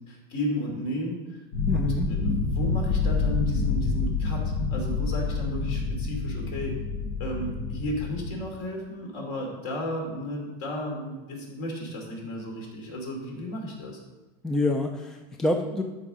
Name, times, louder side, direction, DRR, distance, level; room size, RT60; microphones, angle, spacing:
voice 1, 0.1-1.4 1.7-6.8 7.2-14.0, equal, 50° left, 0 dB, 3.0 m, -34 dB
sound 1, 1.5-8.3, left 4 dB, 85° left, 1.8 m, -27 dB
voice 2, 1.7-2.1 14.4-15.8, left 2 dB, 5° left, 4 dB, 0.3 m, -26 dB
12.5 x 4.8 x 5.0 m, 1.1 s
supercardioid pair, 155°, 21 cm